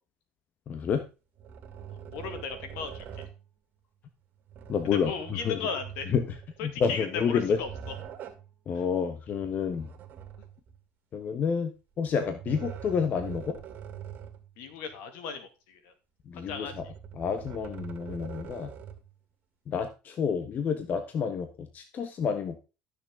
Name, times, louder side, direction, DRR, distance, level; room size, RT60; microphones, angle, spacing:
voice 1, 0.7-1.0 4.7-5.1 5.4-5.6 6.1-6.2 6.6-7.6 8.7-9.9 11.1-11.7 12.0-13.6 16.3-16.7 17.2-18.7 19.7-22.6, left 6 dB, 45° left, 8 dB, 1.4 m, -29 dB
sound 1, 1.4-3.4 4.5-6.6 7.2-8.5 9.3-10.8 12.0-14.5 14.9-15.0 16.3-19.1, right 9 dB, 50° right, 2.1 m, -43 dB
voice 2, 2.1-3.1 4.8-6.1 6.6-8.0 8.7-8.8 14.6-15.9 16.3-16.7, left 6 dB, 75° left, 8 dB, 2.3 m, -36 dB
13.0 x 6.7 x 3.8 m, 0.30 s
supercardioid pair, 90°, 4 cm